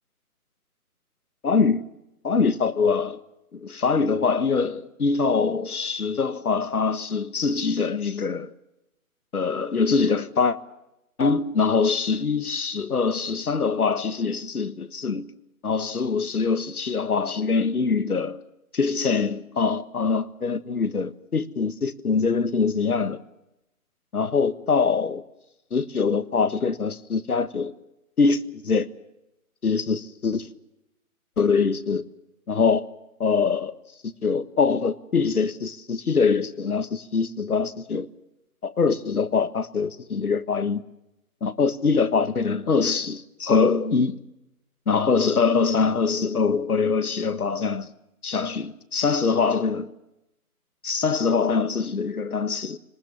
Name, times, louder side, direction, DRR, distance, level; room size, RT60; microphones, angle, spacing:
voice 1, 1.4-1.9 2.2-3.2 3.5-8.5 9.3-10.6 11.2-15.3 15.6-18.4 18.7-23.2 24.1-25.2 25.7-27.7 28.2-28.9 29.6-30.5 31.4-32.0 32.5-32.9 33.2-33.7 34.0-38.1 38.6-40.8 41.4-44.2 44.9-47.9 48.2-49.9 50.8-52.8, left 5 dB, 75° left, 1.6 m, -23 dB
25.5 x 20.0 x 7.2 m
hypercardioid pair, 180°, 45 cm